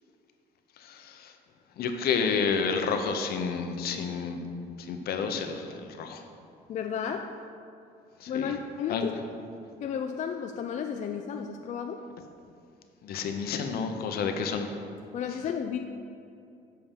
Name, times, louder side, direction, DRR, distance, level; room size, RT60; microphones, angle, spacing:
voice 1, 0.8-1.3 1.8-4.4 4.8-6.2 8.2-8.5 8.9-9.0 13.0-14.7, left 5 dB, 65° left, 6 dB, 0.7 m, -30 dB
voice 2, 6.7-7.3 8.3-9.4 9.8-12.0 15.1-15.8, left 7 dB, 45° left, 5 dB, 0.4 m, -33 dB
7.3 x 4.4 x 5.3 m, 2.5 s
cardioid pair, 110°, 17 cm